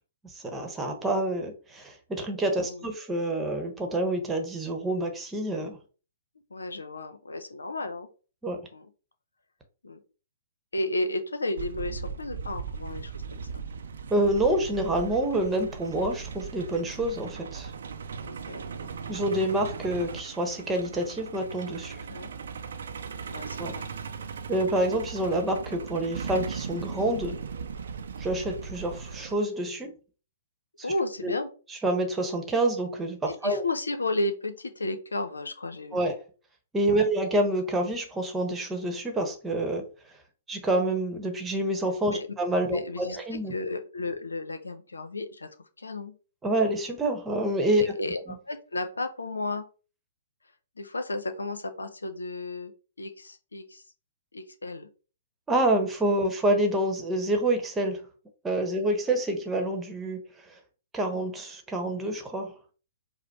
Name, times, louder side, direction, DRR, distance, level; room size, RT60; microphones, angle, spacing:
voice 1, 0.3-5.8 8.4-8.6 14.1-17.7 19.1-22.0 23.6-23.7 24.5-27.4 28.2-29.9 31.2-31.3 31.8-33.6 35.9-36.2 36.7-39.8 40.5-43.5 46.4-47.9 48.3-48.4 55.5-58.0 58.4-60.2 60.9-62.5, right 1 dB, 10° right, 4 dB, 1.1 m, -27 dB
voice 2, 2.6-2.9 6.5-8.1 8.7-8.9 9.8-10.0 10.7-13.6 18.2-18.9 22.0-22.3 23.3-23.9 30.8-31.5 33.2-36.1 36.9-37.0 42.1-42.3 42.7-46.1 47.8-49.7 50.8-52.7 53.0-53.8 54.3-54.9, left 2 dB, 85° left, 9 dB, 0.8 m, -33 dB
Truck, 11.6-29.3, right 6 dB, 65° right, 0.5 m, -38 dB
4.9 x 2.2 x 4.6 m, 0.37 s
figure-of-eight pair, 120°, 0 cm